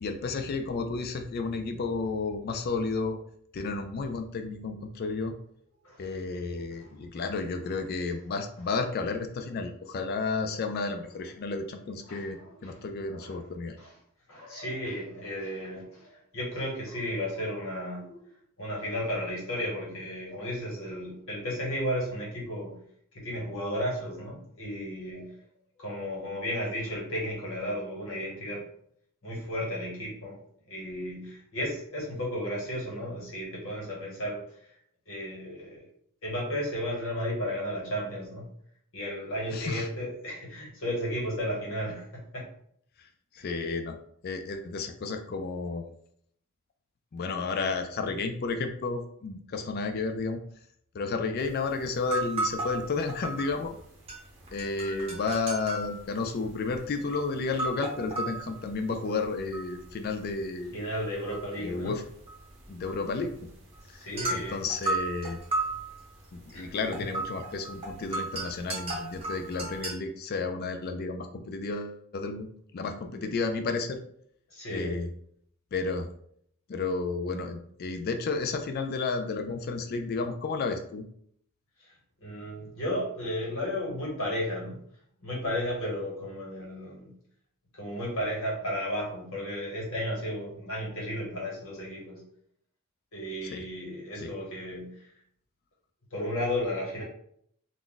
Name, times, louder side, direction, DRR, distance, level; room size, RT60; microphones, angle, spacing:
voice 1, 0.0-3.2 3.5-5.3 6.0-13.8 39.5-39.9 43.0-43.1 43.3-44.0 44.2-45.9 47.1-50.4 50.9-53.8 54.5-60.7 61.6-62.0 62.7-63.3 63.9-65.4 66.3-74.0 74.7-75.1 75.7-76.1 76.7-81.0 93.4-93.6 94.2-94.3, left 4 dB, 45° left, 6 dB, 0.3 m, -32 dB
voice 2, 12.1-12.8 13.1-13.3 13.8-13.9 14.3-18.3 18.6-22.7 23.1-25.4 25.8-28.6 29.2-30.4 30.7-34.4 35.1-35.8 36.2-38.5 38.9-42.5 43.4-43.5 60.7-61.9 63.9-64.6 66.5-66.7 74.5-75.0 82.2-84.8 85.2-87.1 87.7-92.2 93.1-95.0 96.1-97.0, equal, 65° left, -4 dB, 1.2 m, -34 dB
sound 1, 51.4-51.5 51.8-53.8 54.1-60.4 60.6-69.9, right 2 dB, 25° right, 0.7 m, -35 dB
2.4 x 2.1 x 3.8 m, 0.66 s
head